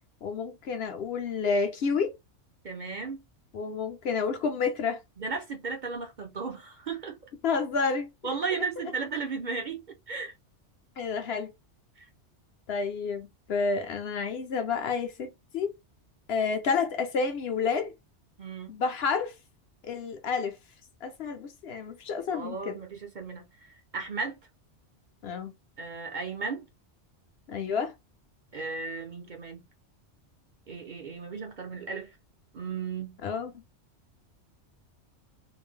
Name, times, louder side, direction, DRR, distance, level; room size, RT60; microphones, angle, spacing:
voice 1, 0.2-2.1 3.5-5.0 7.4-8.1 11.0-11.5 12.7-15.7 16.3-17.9 18.7-19.3 19.8-20.6 21.0-22.7 25.2-25.5 27.5-27.9 33.2-33.5, left 5 dB, 65° left, 0.9 m, -29 dB
voice 2, 2.6-3.2 5.2-7.2 8.2-10.3 12.0-12.1 18.4-18.8 22.3-24.4 25.8-26.7 28.5-29.6 30.7-32.2 32.5-33.5, right 4 dB, 45° right, 0.7 m, -35 dB
4.0 x 2.1 x 3.6 m
omnidirectional pair, 1.2 m